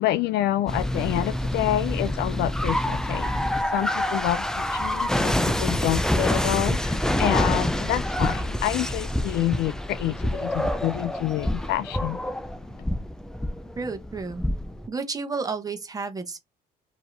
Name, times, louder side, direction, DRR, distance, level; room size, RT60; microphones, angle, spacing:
voice 1, 0.0-12.2, left 14 dB, 75° left, 0.4 m, -28 dB
sound 1, 0.7-14.9, left 1 dB, 5° left, 0.5 m, -27 dB
voice 2, 13.7-14.4 14.9-16.4, right 4 dB, 20° right, 1.0 m, -31 dB
4.6 x 2.9 x 3.2 m
cardioid pair, 110°, 17 cm